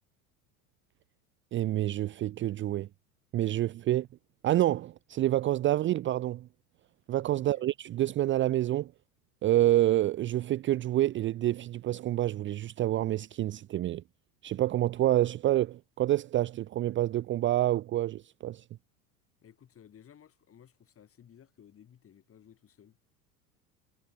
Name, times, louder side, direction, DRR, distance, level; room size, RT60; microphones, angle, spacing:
voice 1, 1.5-2.9 3.3-4.1 4.4-6.5 7.1-8.9 9.4-14.0 14.4-18.6, right 14 dB, 25° right, 0.7 m, -28 dB
voice 2, 7.3-7.7 19.4-23.0, left 9 dB, 30° left, 5.9 m, -57 dB
figure-of-eight pair, 80°, 47 cm